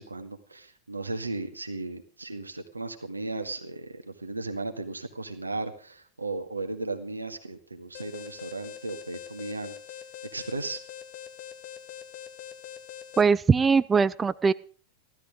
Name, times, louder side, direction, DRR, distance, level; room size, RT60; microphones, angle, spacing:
voice 1, 0.0-10.0 10.3-10.8, right 2 dB, 80° right, 7 dB, 1.8 m, -36 dB
Alarm, 7.9-13.2, left 9 dB, 45° left, 1.4 m, -43 dB
voice 2, 13.2-14.5, right 5 dB, 15° right, 19 dB, 0.6 m, -21 dB
15.5 x 13.0 x 5.0 m, 0.38 s
figure-of-eight pair, 90°, 0 cm